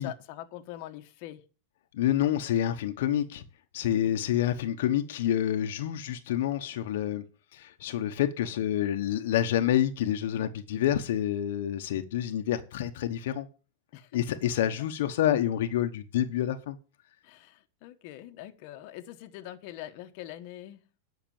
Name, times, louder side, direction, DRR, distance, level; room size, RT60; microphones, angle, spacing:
voice 1, 0.0-1.4 13.9-14.2 17.2-20.8, left 13 dB, 50° left, 1.2 m, -43 dB
voice 2, 1.9-3.4 3.7-7.2 7.5-13.5 14.1-16.8, left 11 dB, 70° left, 1.0 m, -28 dB
10.5 x 5.9 x 7.1 m
supercardioid pair, 145°, 0 cm